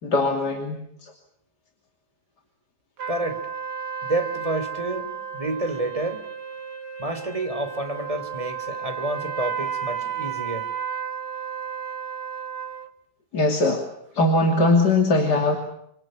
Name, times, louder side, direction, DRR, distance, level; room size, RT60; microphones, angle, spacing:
voice 1, 0.0-1.1 13.3-13.9 14.2-15.6, left 2 dB, 85° left, 3 dB, 3.5 m, -21 dB
sound 1, 3.0-12.9, right 7 dB, 85° right, 2.5 m, -33 dB
voice 2, 3.1-3.4 4.0-6.3 7.0-10.7, right 2 dB, 20° right, 8 dB, 3.4 m, -29 dB
28.5 x 24.5 x 7.8 m, 0.73 s
omnidirectional pair, 1.8 m